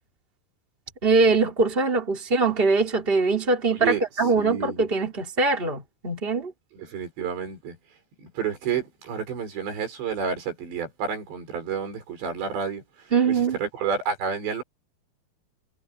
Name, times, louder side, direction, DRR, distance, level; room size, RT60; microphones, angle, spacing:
voice 1, 1.0-6.5 13.1-13.6, right 3 dB, 15° right, 4.0 m, -22 dB
voice 2, 3.7-4.0 4.4-4.9 6.7-7.8 8.2-12.8 13.3-14.6, right 6 dB, 85° right, 7.8 m, -30 dB
omnidirectional pair, 4.9 m